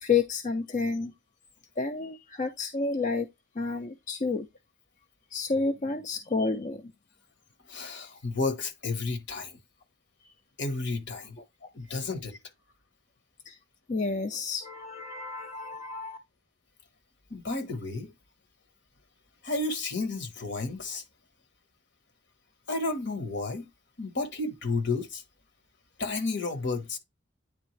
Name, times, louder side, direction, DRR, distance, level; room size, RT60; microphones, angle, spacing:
voice 1, 0.0-1.1 1.8-3.3 3.6-4.5 5.3-6.8 13.5-13.6 13.9-16.2, left 4 dB, 40° left, 0.6 m, -30 dB
voice 2, 7.7-9.6 10.6-11.4 11.7-12.4 17.3-18.1 19.4-21.0 22.7-23.7 24.0-25.2 26.0-27.0, left 3 dB, 65° left, 1.3 m, -32 dB
9.3 x 3.5 x 3.2 m
head